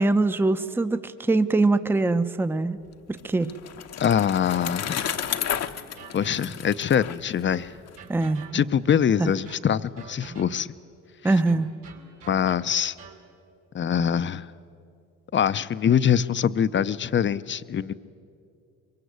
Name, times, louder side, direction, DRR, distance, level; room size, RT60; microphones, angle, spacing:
voice 1, 0.0-2.8 3.1-3.5 8.1-8.6 9.2-9.3 11.2-11.7, right 2 dB, 5° right, 11 dB, 0.7 m, -23 dB
Bicycle, 2.9-8.0, left 9 dB, 55° left, 1.0 m, -32 dB
voice 2, 4.0-5.1 6.1-7.7 8.5-10.7 11.2-11.3 12.3-12.9 13.7-14.5 15.3-17.9, left 8 dB, 40° left, 15 dB, 0.7 m, -23 dB
sound 1, 5.4-6.9 7.4-8.9 9.4-10.8 11.4-13.3, right 6 dB, 80° right, 2.7 m, -47 dB
23.0 x 23.0 x 8.1 m, 2.5 s
cardioid pair, 90°, 30 cm